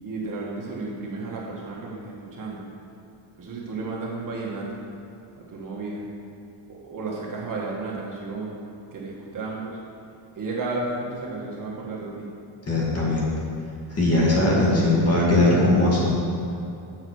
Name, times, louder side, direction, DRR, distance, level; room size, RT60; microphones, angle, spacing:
voice 1, 0.0-2.7 3.4-4.8 5.4-6.1 6.7-9.8 10.4-12.3, right 3 dB, 40° right, -4 dB, 1.7 m, -33 dB
voice 2, 12.7-13.3 13.9-16.0, left 2 dB, 30° left, -5 dB, 2.1 m, -20 dB
7.6 x 5.7 x 6.4 m, 2.7 s
cardioid pair, 135°, 49 cm